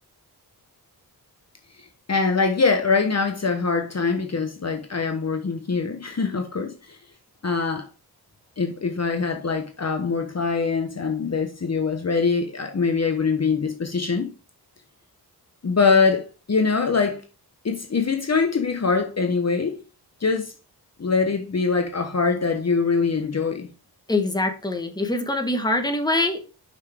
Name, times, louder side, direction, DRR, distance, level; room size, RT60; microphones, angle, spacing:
voice 1, 1.8-7.0 7.4-7.9 8.6-14.3 15.6-17.2 17.6-19.8 20.2-20.5 21.0-23.7, left 4 dB, 40° left, 0.9 m, -23 dB
voice 2, 24.1-26.5, left 2 dB, 10° left, 1.3 m, -24 dB
6.4 x 5.9 x 3.5 m
wide cardioid pair, 105°, 39 cm